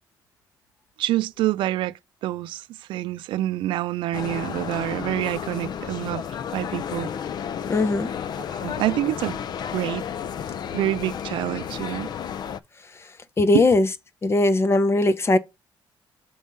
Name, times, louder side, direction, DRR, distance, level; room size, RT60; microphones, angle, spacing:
voice 1, 1.0-6.2 6.5-7.1 8.5-9.4 9.7-10.0 10.7-12.1 13.5-13.7, right 14 dB, 80° right, 0.4 m, -27 dB
sound 1, 4.1-12.6, left 8 dB, 55° left, 0.5 m, -32 dB
voice 2, 7.7-8.1 13.4-13.9 14.2-15.4, left 2 dB, 30° left, 0.8 m, -19 dB
6.2 x 3.6 x 5.4 m
cardioid pair, 100°, 8 cm